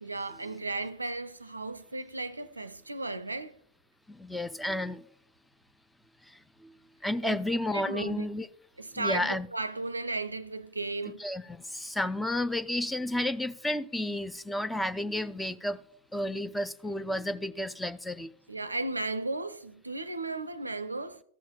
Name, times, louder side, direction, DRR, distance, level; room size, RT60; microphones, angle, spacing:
voice 1, 0.0-3.6 7.2-7.4 7.7-8.2 8.8-11.2 18.5-21.2, right 2 dB, 80° right, 0.4 m, -35 dB
voice 2, 4.1-5.0 6.3-6.7 7.0-8.5 9.0-9.5 11.2-15.8 16.1-18.3, left 1 dB, 5° left, 0.4 m, -32 dB
14.0 x 7.1 x 2.3 m
figure-of-eight pair, 90°, 0 cm